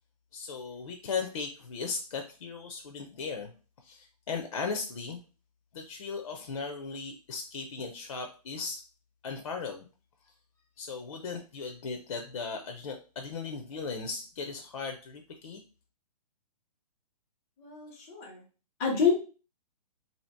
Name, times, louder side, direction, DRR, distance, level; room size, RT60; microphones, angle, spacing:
voice 1, 0.3-3.5 3.8-5.2 5.7-8.8 9.2-9.9 10.8-15.6, left 5 dB, 60° left, 3 dB, 0.6 m, -37 dB
voice 2, 17.6-18.4 18.8-19.1, left 6 dB, 5° left, -5 dB, 0.3 m, -28 dB
2.8 x 2.8 x 4.3 m, 0.35 s
hypercardioid pair, 175°, 20 cm